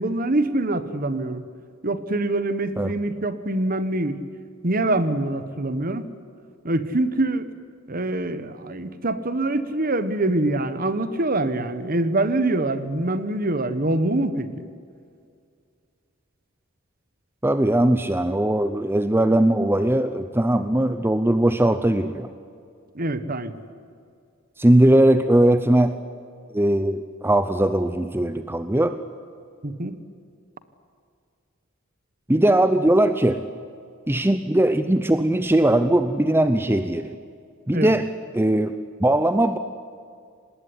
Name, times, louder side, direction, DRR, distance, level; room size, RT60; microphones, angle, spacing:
voice 1, 0.0-1.4 1.8-4.2 4.6-6.1 6.6-7.4 7.9-14.5 22.9-23.6 29.6-29.9 37.7-37.9, right 2 dB, 45° right, 12 dB, 1.5 m, -24 dB
voice 2, 17.4-22.3 24.6-26.0 26.5-29.0 32.3-33.4 34.1-37.2 37.7-39.6, right 1 dB, 10° right, 10 dB, 0.7 m, -20 dB
26.0 x 20.0 x 9.8 m, 2.3 s
head